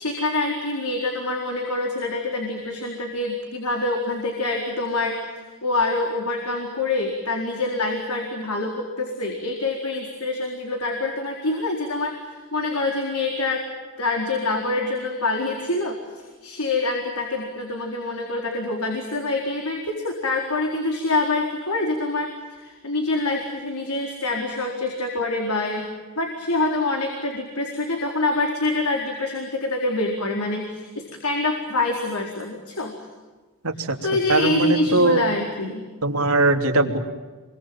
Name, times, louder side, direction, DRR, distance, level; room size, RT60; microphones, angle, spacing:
voice 1, 0.0-13.7 14.0-25.9 26.2-32.9 34.0-35.8, left 2 dB, 90° left, 2 dB, 4.3 m, -26 dB
voice 2, 33.6-34.0 34.3-35.2 36.0-37.0, right 2 dB, 80° right, 3 dB, 3.2 m, -20 dB
29.0 x 24.5 x 7.4 m, 1.3 s
head